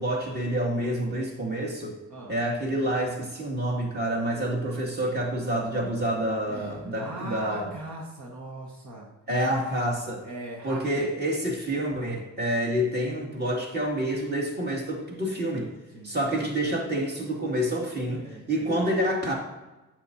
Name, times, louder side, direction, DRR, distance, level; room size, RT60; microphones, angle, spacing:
voice 1, 0.0-2.0 2.3-7.7 9.3-10.2 10.6-15.7 16.0-19.3, right 1 dB, 35° right, -2 dB, 2.5 m, -28 dB
voice 2, 6.5-9.1 10.2-11.2 15.9-16.5 17.6-17.7 18.1-18.8, right 2 dB, 70° right, -1 dB, 1.6 m, -40 dB
8.8 x 8.1 x 2.8 m, 1.1 s
cardioid pair, 90°, 30 cm